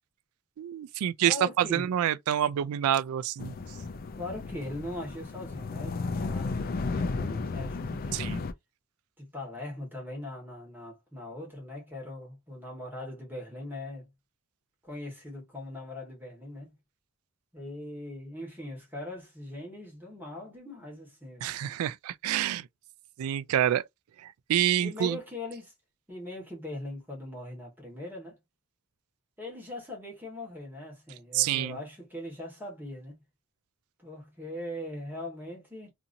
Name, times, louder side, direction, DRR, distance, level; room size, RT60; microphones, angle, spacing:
voice 1, 0.6-3.5 8.1-8.4 21.4-22.7 23.2-23.8 24.2-25.2 31.3-31.8, right 10 dB, 80° right, 0.3 m, -27 dB
voice 2, 1.2-1.9 4.2-8.3 9.2-14.1 14.8-16.7 17.5-21.5 24.8-25.7 26.1-28.4 29.4-33.2 34.0-35.9, left 1 dB, 10° right, 1.3 m, -40 dB
sound 1, 3.4-8.5, left 3 dB, 45° left, 0.4 m, -34 dB
2.8 x 2.6 x 2.5 m
head